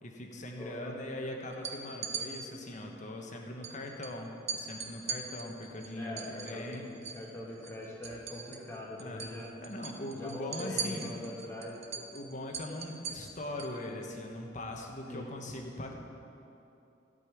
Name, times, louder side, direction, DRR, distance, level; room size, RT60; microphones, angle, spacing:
voice 1, 0.0-6.9 9.0-9.2 9.6-11.2 11.9-15.9, left 1 dB, 40° left, 2 dB, 1.2 m, -41 dB
voice 2, 0.6-1.0 6.0-6.8 7.1-9.5 10.1-11.7 15.1-15.3, left 1 dB, 15° left, -4 dB, 1.9 m, -42 dB
sound 1, 1.5-2.3 3.6-3.7 4.0-4.1 4.5-7.3 7.5-8.7 9.0-9.3 9.6-13.8, right 6 dB, 35° right, 0.8 m, -39 dB
12.0 x 5.4 x 8.3 m, 2.9 s
head